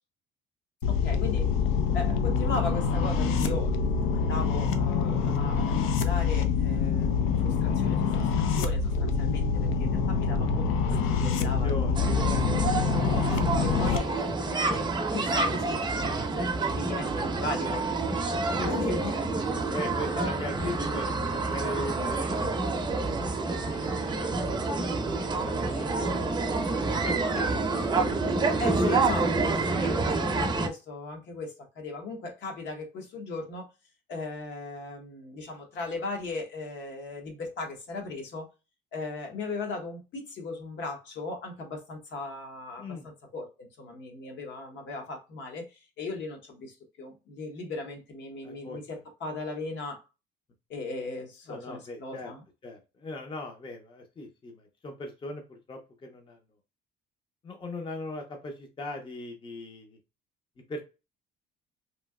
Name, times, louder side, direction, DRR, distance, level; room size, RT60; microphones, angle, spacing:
sound 1, 0.8-14.0, left 5 dB, 85° left, 0.5 m, -26 dB
voice 1, 0.9-1.6 1.9-10.7 11.1-12.3 13.5-17.9 18.7-19.1 28.6-33.7 34.1-38.5 38.9-45.7 46.0-50.0 50.7-52.4, left 3 dB, 60° left, 3 dB, 1.1 m, -37 dB
voice 2, 10.9-12.5 12.8-13.7 18.6-22.3 23.0-26.4 26.9-29.2 42.8-43.1 48.4-48.8 51.5-52.3 52.6-56.4 57.4-60.0 60.7-60.8, left 2 dB, 25° left, 3 dB, 0.6 m, -39 dB
sound 2, 11.9-30.7, right 3 dB, 20° right, 0.6 m, -28 dB
3.1 x 2.7 x 2.3 m, 0.28 s
cardioid pair, 135°, 21 cm